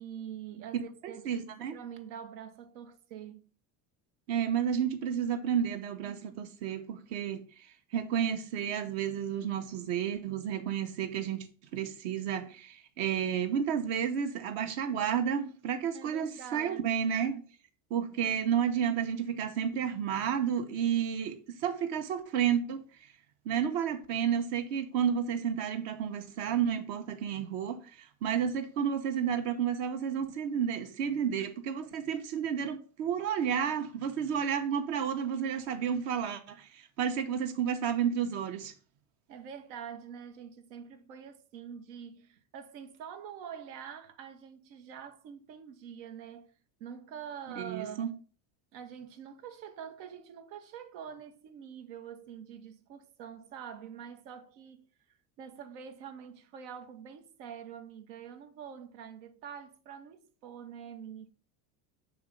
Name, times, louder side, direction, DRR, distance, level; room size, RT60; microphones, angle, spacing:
voice 1, 0.0-3.4 15.9-16.8 18.2-18.5 39.3-46.5 46.8-48.2 48.7-54.8 55.4-61.3, right 8 dB, 90° right, 1.2 m, -45 dB
voice 2, 0.7-1.8 4.3-7.4 7.9-11.5 11.7-17.4 17.9-22.8 23.4-38.7 47.6-48.1, right 8 dB, 65° right, 1.1 m, -31 dB
7.0 x 3.1 x 5.1 m
cardioid pair, 145°, 48 cm